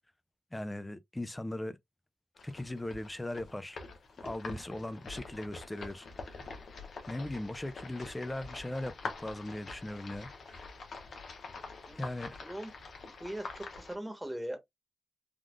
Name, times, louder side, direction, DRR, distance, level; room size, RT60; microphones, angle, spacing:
voice 1, 0.5-1.8 2.4-3.8 4.2-6.4 7.1-10.7 12.0-12.4, left 1 dB, 15° left, 0.5 m, -39 dB
sound 1, 2.4-14.0, left 4 dB, 75° left, 0.9 m, -45 dB
voice 2, 13.0-14.6, right 1 dB, 10° right, 1.2 m, -40 dB
3.6 x 2.4 x 2.4 m
cardioid pair, 65°, 0 cm